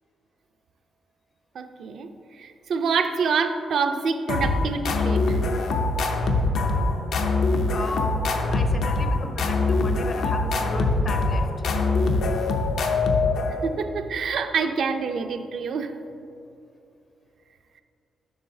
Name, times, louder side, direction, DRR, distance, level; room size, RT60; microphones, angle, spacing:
voice 1, 1.5-2.1 2.4-5.4 13.5-16.0, right 5 dB, 60° right, 7 dB, 0.4 m, -26 dB
sound 1, 4.3-13.8, left 3 dB, 85° left, 0.6 m, -23 dB
voice 2, 7.7-11.7, left 2 dB, 35° left, 6 dB, 0.5 m, -36 dB
7.6 x 6.3 x 2.7 m, 2.7 s
wide cardioid pair, 155°, 0 cm